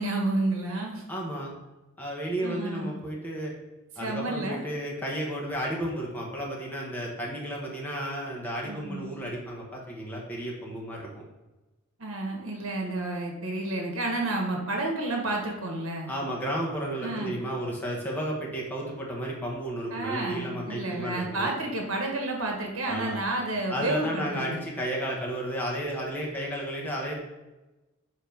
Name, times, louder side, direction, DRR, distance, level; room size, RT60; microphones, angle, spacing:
voice 1, 0.0-1.0 2.4-2.9 4.0-4.6 8.6-9.2 12.0-16.1 17.0-17.3 19.9-24.7, right 2 dB, 70° right, 1 dB, 1.5 m, -30 dB
voice 2, 1.1-1.5 2.0-3.5 4.0-11.1 16.1-21.5 22.9-23.2 23.7-27.2, equal, 10° left, -3 dB, 1.1 m, -33 dB
6.6 x 3.0 x 5.2 m, 1.1 s
head